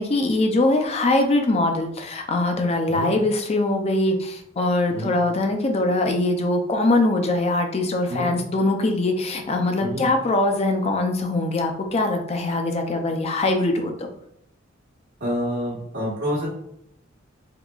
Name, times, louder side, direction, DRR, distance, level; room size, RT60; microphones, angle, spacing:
voice 1, 0.0-14.1, left 2 dB, 30° left, 4 dB, 0.4 m, -22 dB
voice 2, 8.1-8.4 9.8-10.1 15.2-16.5, equal, 60° right, -7 dB, 1.1 m, -28 dB
3.7 x 2.9 x 2.3 m, 0.73 s
head